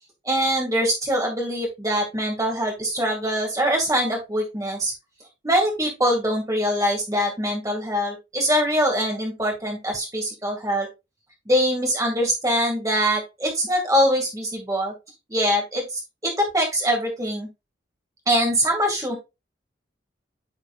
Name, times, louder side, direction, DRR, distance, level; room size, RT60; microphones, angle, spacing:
voice 1, 0.3-4.9 5.4-10.9 11.5-14.9 15.3-17.5 18.3-19.2, equal, 20° right, 0 dB, 2.2 m, -23 dB
9.4 x 4.8 x 2.5 m, 0.24 s
head